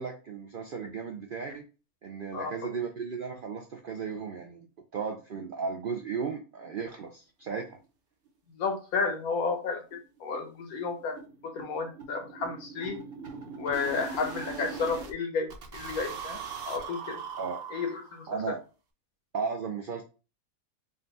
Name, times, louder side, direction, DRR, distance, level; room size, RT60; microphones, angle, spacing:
voice 1, 0.0-1.7 2.0-4.7 4.9-7.8 17.4-17.6 18.3-18.6 19.3-20.0, right 5 dB, 75° right, 3 dB, 0.5 m, -35 dB
voice 2, 2.3-2.7 8.5-11.2 11.4-13.0 13.6-17.2 17.7-18.5, left 4 dB, 90° left, 5 dB, 1.4 m, -32 dB
sound 1, 8.3-8.4 8.7-8.8 9.1-9.2 9.5-9.6 9.9-15.1 15.5-18.3, right 5 dB, 50° right, 0.9 m, -41 dB
4.0 x 2.2 x 3.9 m, 0.33 s
omnidirectional pair, 1.5 m